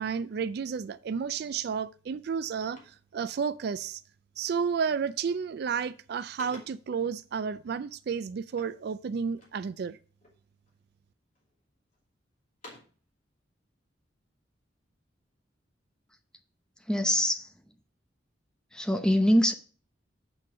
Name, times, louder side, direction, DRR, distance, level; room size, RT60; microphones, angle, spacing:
voice 1, 0.0-4.0 4.4-10.0, right 6 dB, 60° right, 0.4 m, -32 dB
sound 1, 1.8-2.0 2.3-3.8 4.4-4.8 5.1-5.6 5.9-7.0 8.5-9.7 10.2-10.8 11.4-12.0 12.4-13.1, left 1 dB, 45° left, 2.6 m, -53 dB
voice 2, 16.9-17.5 18.7-19.5, equal, 5° left, 0.7 m, -24 dB
7.8 x 4.5 x 5.9 m
head